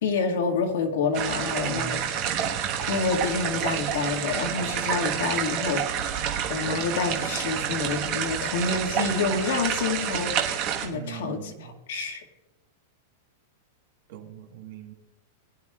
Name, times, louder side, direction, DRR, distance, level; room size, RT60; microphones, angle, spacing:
voice 1, 0.0-2.0 2.9-6.1 6.5-11.5 11.9-12.2, left 4 dB, 65° left, 2 dB, 1.9 m, -28 dB
sound 1, 1.1-10.9, right 9 dB, 30° right, 1.4 m, -28 dB
voice 2, 1.6-2.1 10.9-11.8 14.1-14.9, right 8 dB, 55° right, 4 dB, 1.4 m, -40 dB
22.0 x 10.5 x 2.4 m, 1.1 s
supercardioid pair, 180°, 0 cm